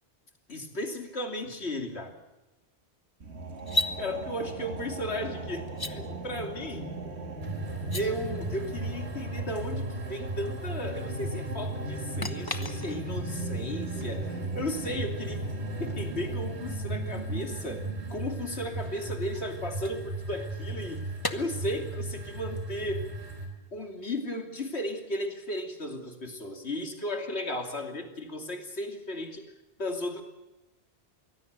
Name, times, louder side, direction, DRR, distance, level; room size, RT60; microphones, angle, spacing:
voice 1, 0.5-2.2 3.7-7.0 7.9-15.5 15.8-17.8 18.1-23.1 23.7-29.4 29.8-30.2, left 1 dB, 75° left, 4 dB, 3.1 m, -35 dB
sound 1, 3.2-18.2, right 2 dB, 75° right, 2.2 m, -39 dB
sound 2, 3.6-4.0 5.7-5.9 7.8-8.1 12.2-13.2 16.4-16.5 18.4-20.6 21.2-21.4, left 1 dB, 20° left, 1.1 m, -34 dB
sound 3, 7.4-23.5, right 2 dB, 45° right, 4.4 m, -37 dB
24.0 x 17.0 x 8.1 m, 1.0 s
omnidirectional pair, 1.1 m